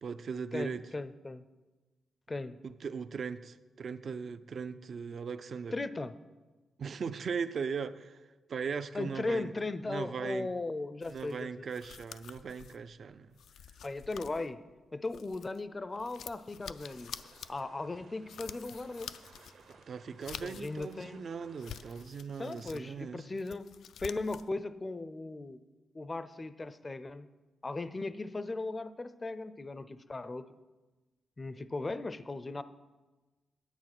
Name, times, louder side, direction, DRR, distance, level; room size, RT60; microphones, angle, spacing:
voice 1, 0.0-0.8 2.6-5.8 6.8-9.5 9.9-10.5 11.1-13.4 19.7-23.3, right 6 dB, 50° right, 12 dB, 0.4 m, -39 dB
voice 2, 0.5-1.4 2.3-2.6 5.7-6.1 8.9-11.5 13.8-14.6 14.9-17.1 17.5-19.1 20.4-21.3 22.4-23.6 24.0-25.6 25.9-27.3 27.6-30.5 31.4-32.6, left 2 dB, 25° left, 14 dB, 0.5 m, -37 dB
sound 1, 11.0-15.6 15.9-21.1 21.4-22.9 23.2-24.5, left 8 dB, 80° left, 0.4 m, -49 dB
sound 2, 16.8-22.1, right 5 dB, 70° right, 1.2 m, -59 dB
9.7 x 8.3 x 6.0 m, 1.2 s
cardioid pair, 115°, 0 cm